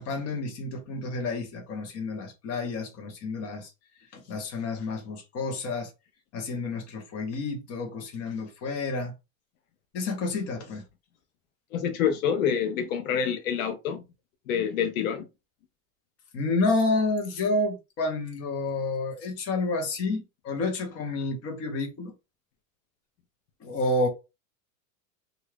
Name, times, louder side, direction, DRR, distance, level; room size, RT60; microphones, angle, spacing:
voice 1, 0.0-3.7 4.1-5.9 6.3-9.1 9.9-10.8 16.3-22.1 23.6-24.1, left 3 dB, 35° left, 1.0 m, -29 dB
voice 2, 11.7-14.0 14.5-15.3, left 8 dB, 75° left, 0.6 m, -27 dB
2.6 x 2.4 x 3.2 m
supercardioid pair, 140°, 42 cm